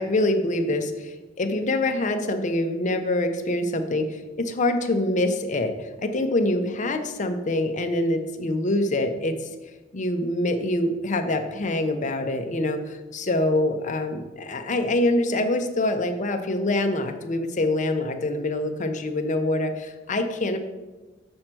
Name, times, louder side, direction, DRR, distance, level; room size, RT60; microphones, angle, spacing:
voice 1, 0.0-9.5 9.9-20.6, left 1 dB, 40° left, 6 dB, 0.7 m, -25 dB
6.4 x 4.4 x 5.9 m, 1.2 s
head